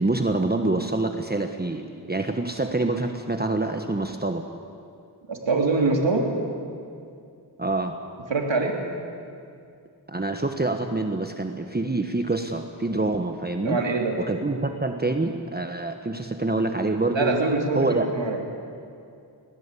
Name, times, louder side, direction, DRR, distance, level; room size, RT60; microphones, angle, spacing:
voice 1, 0.0-4.4 7.6-8.0 10.1-13.8 14.2-17.3 17.7-18.1, right 2 dB, 20° right, 6 dB, 1.2 m, -26 dB
voice 2, 5.3-6.3 8.3-8.8 13.6-14.2 17.1-18.4, right 3 dB, 80° right, 2 dB, 3.2 m, -24 dB
21.0 x 19.5 x 8.4 m, 2.4 s
wide cardioid pair, 60°, 44 cm